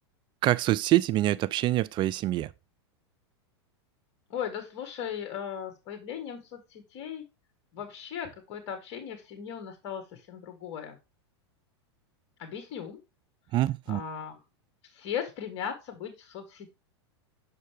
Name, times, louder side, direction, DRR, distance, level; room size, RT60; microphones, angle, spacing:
voice 1, 0.4-2.5 13.5-14.0, right 15 dB, 35° right, 0.4 m, -25 dB
voice 2, 4.3-7.2 7.7-11.0 12.4-13.0 13.9-14.4 14.9-16.7, left 8 dB, 50° left, 1.6 m, -37 dB
7.3 x 5.6 x 3.4 m
hypercardioid pair, 110°, 14 cm